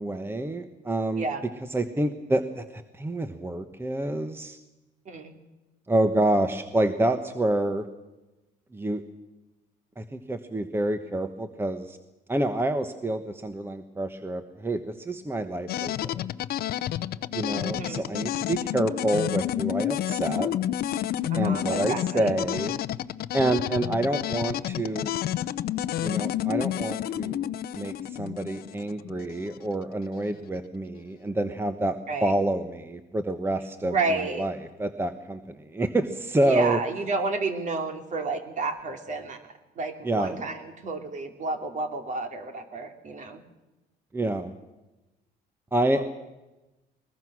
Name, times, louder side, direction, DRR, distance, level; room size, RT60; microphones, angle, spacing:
voice 1, 0.0-1.3 1.7-4.6 5.9-7.8 8.7-9.0 10.0-12.0 12.3-16.3 17.3-20.5 21.3-22.7 23.3-25.1 26.0-27.5 27.7-36.8 40.0-40.3 44.1-44.5 45.7-46.1, right 1 dB, 15° right, 9 dB, 1.2 m, -28 dB
voice 2, 5.0-5.4 17.6-18.0 21.3-22.3 32.1-32.3 33.8-34.5 36.4-43.4 45.9-46.1, right 3 dB, 45° right, 6 dB, 2.9 m, -31 dB
sound 1, 15.7-29.6, left 12 dB, 65° left, 0.7 m, -30 dB
21.5 x 20.5 x 6.3 m, 1.0 s
cardioid pair, 110°, 17 cm